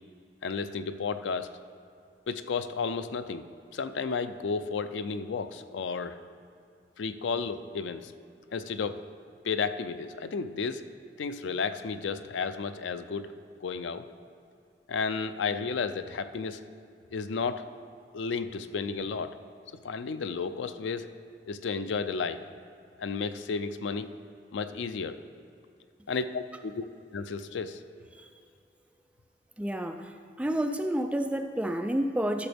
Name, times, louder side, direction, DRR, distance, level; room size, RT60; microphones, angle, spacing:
voice 1, 0.4-1.6 2.3-3.5 3.7-6.2 7.0-8.1 8.5-9.0 9.4-10.8 11.2-13.3 13.6-14.0 14.9-16.6 17.1-17.6 18.1-19.4 19.8-21.1 21.5-22.4 23.0-24.1 24.5-25.2 26.1-26.8 27.1-27.8, left 5 dB, 85° left, 11 dB, 0.4 m, -32 dB
voice 2, 29.6-30.1 30.4-32.5, right 1 dB, 5° right, 6 dB, 0.4 m, -29 dB
12.5 x 6.9 x 3.4 m, 2.5 s
head